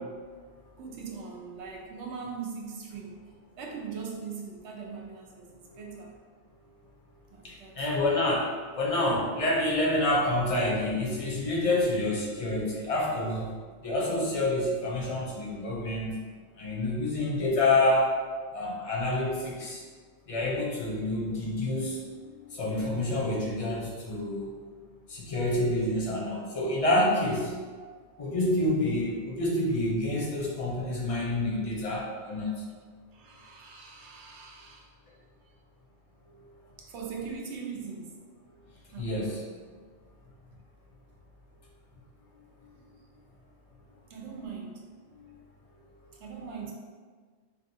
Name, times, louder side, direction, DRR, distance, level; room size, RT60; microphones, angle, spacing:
voice 1, 0.8-3.2 3.6-6.1 7.3-7.9 16.0-16.1 18.7-18.9 27.8-27.9 33.1-34.9 36.8-38.2 38.9-39.2 44.1-44.9 46.1-46.7, right 5 dB, 85° right, 0 dB, 0.9 m, -41 dB
voice 2, 7.4-8.5 8.8-13.5 13.8-16.2 16.6-18.1 18.5-19.8 20.3-22.0 22.5-24.5 25.1-27.5 28.2-32.5 39.0-39.4, left 1 dB, 40° left, -5 dB, 0.6 m, -28 dB
3.3 x 2.4 x 2.6 m, 1.5 s
omnidirectional pair, 1.2 m